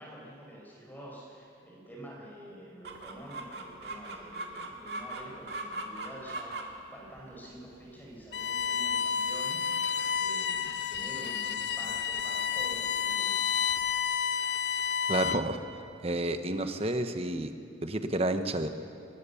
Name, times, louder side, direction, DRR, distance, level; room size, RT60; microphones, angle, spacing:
voice 1, 0.0-6.5 6.9-13.6, right 1 dB, 10° left, -3 dB, 4.9 m, -47 dB
Chicken rooster, 2.8-13.9, right 2 dB, 65° right, 2.1 m, -43 dB
Bowed string instrument, 8.3-15.6, left 7 dB, 65° left, 0.7 m, -30 dB
voice 2, 15.1-15.6 16.0-17.5 17.8-18.7, right 1 dB, 35° right, 8 dB, 1.1 m, -30 dB
23.0 x 20.0 x 7.1 m, 2.6 s
head